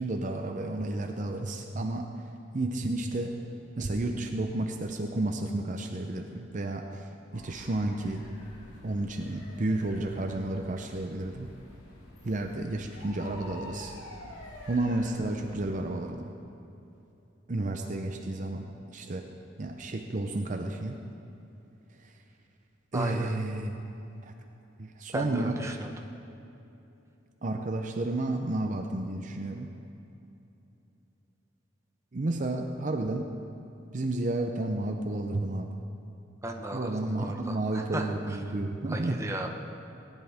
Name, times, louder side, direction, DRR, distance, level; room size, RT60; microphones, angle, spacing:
voice 1, 0.0-2.1 2.5-3.3 3.8-6.9 7.3-8.2 8.8-11.5 12.2-14.0 14.7-16.3 17.5-19.2 19.6-21.0 22.9-23.8 24.8-25.6 27.4-29.7 32.1-33.3 33.9-35.7 36.7-39.2, right 2 dB, 40° right, 4 dB, 0.6 m, -31 dB
sound 1, 7.3-15.6, left 1 dB, 85° left, 2.6 m, -48 dB
voice 2, 22.9-23.3 25.1-25.9 36.4-38.4 38.9-39.5, right 1 dB, 15° right, 2 dB, 0.8 m, -35 dB
18.5 x 10.5 x 3.5 m, 2.9 s
head